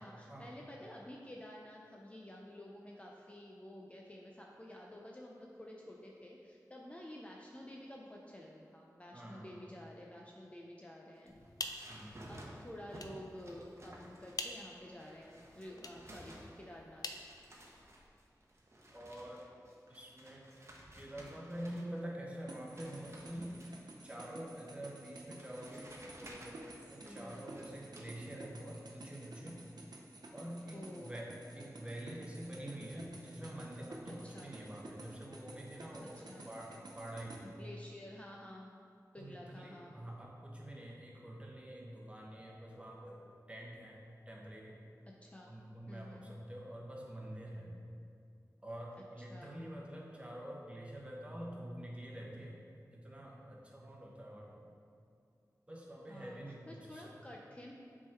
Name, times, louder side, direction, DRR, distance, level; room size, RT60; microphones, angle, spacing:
voice 1, 0.0-11.4 11.8-17.1 27.0-27.4 30.7-31.2 34.2-34.5 36.1-36.4 37.4-38.7 39.1-39.9 45.2-45.5 45.9-46.3 49.0-49.5 56.1-57.7, left 1 dB, 20° left, -2 dB, 0.6 m, -51 dB
voice 2, 9.1-9.7 11.9-12.2 18.9-19.4 19.9-20.5 21.0-23.7 24.0-26.6 26.9-29.6 30.3-37.5 39.2-43.2 43.5-44.0 44.3-44.8 45.4-47.8 48.6-52.6 52.9-54.6 55.7-57.1, right 1 dB, 20° right, -2 dB, 1.1 m, -47 dB
sound 1, 11.2-14.6 15.0-16.8 17.1-22.0 22.3-23.9 24.8-24.9 25.4-28.1, right 1 dB, 45° right, 0.9 m, -55 dB
sound 2, 11.3-18.1, left 3 dB, 65° left, 0.5 m, -48 dB
sound 3, 22.5-37.4, right 2 dB, 85° right, 0.7 m, -52 dB
7.2 x 3.7 x 4.5 m, 2.4 s
wide cardioid pair, 65°, 7 cm